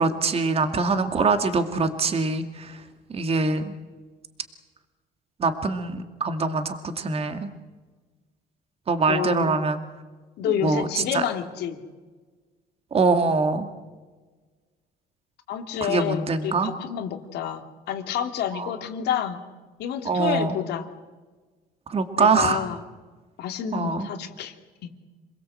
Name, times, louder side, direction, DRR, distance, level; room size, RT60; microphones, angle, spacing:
voice 1, 0.0-2.8 3.1-3.7 5.4-7.5 8.9-9.8 10.6-11.2 12.9-13.7 15.8-16.7 18.5-18.7 20.0-20.6 21.9-22.6 23.7-24.1, right 4 dB, 35° right, 7 dB, 2.4 m, -23 dB
voice 2, 9.1-9.5 10.4-11.8 15.5-19.4 19.8-20.9 22.2-22.8 23.4-24.6, left 9 dB, 80° left, 4 dB, 2.6 m, -29 dB
28.0 x 21.0 x 7.8 m, 1.3 s
cardioid pair, 110°, 17 cm